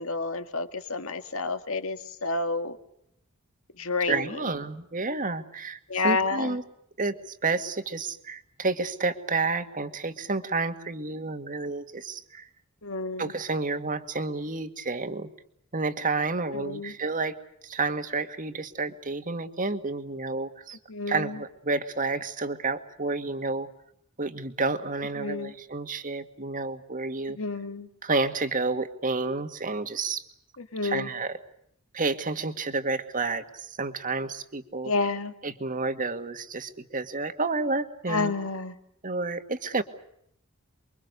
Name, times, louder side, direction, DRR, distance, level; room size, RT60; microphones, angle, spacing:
voice 1, 0.0-2.8 3.8-4.3 5.9-6.6 12.8-13.3 16.5-17.0 20.9-21.4 25.2-25.5 27.3-27.9 30.6-31.1 34.8-35.3 38.1-38.8, left 3 dB, 70° left, 8 dB, 2.0 m, -30 dB
voice 2, 4.1-6.6 7.0-12.5 13.2-15.3 15.7-17.3 17.6-20.8 21.1-23.7 24.2-27.4 28.0-30.2 30.8-31.3 31.9-34.9 35.4-38.3 39.0-39.8, right 3 dB, 40° right, 7 dB, 2.0 m, -30 dB
29.0 x 23.5 x 6.8 m, 0.74 s
head